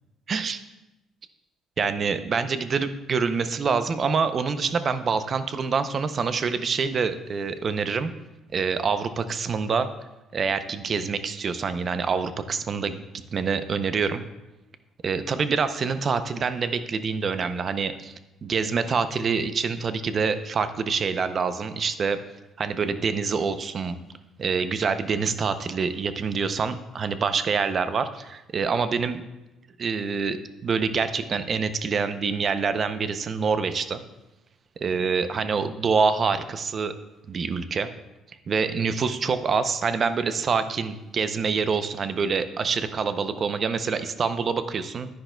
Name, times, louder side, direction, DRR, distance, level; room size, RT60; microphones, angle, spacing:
voice 1, 0.3-0.6 1.8-8.1 8.5-9.9 10.3-13.0 13.3-14.2 15.0-18.1 18.4-22.2 22.6-23.9 24.4-29.2 29.8-34.0 34.8-36.9 37.3-37.9 38.5-45.1, right 5 dB, 35° right, 11 dB, 0.5 m, -26 dB
10.5 x 10.0 x 2.2 m, 0.99 s
cardioid pair, 135°, 0 cm